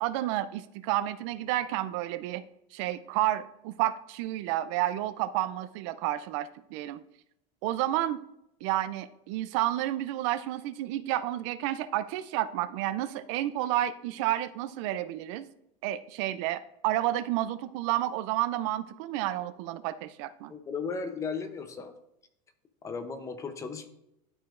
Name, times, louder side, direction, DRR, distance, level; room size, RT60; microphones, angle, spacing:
voice 1, 0.0-2.4 2.7-7.0 7.6-8.2 8.6-15.5 15.8-20.5, right 14 dB, 60° right, 14 dB, 0.4 m, -30 dB
voice 2, 20.5-21.9 22.8-23.9, left 5 dB, 20° left, 8 dB, 0.7 m, -35 dB
12.0 x 4.9 x 2.5 m, 0.82 s
supercardioid pair, 155°, 17 cm